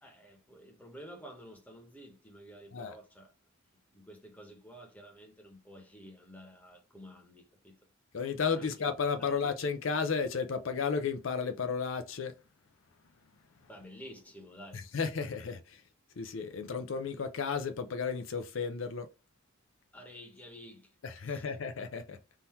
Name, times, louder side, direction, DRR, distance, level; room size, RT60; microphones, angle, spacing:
voice 1, 0.0-3.3 3.9-7.9 8.5-8.8 9.2-9.4 13.7-14.9 19.9-21.0 21.3-21.4, equal, 10° left, 1.1 m, -51 dB
voice 2, 8.1-12.3 14.9-15.8 16.2-19.1 21.0-22.2, left 5 dB, 65° left, 0.5 m, -33 dB
3.7 x 2.7 x 4.3 m
head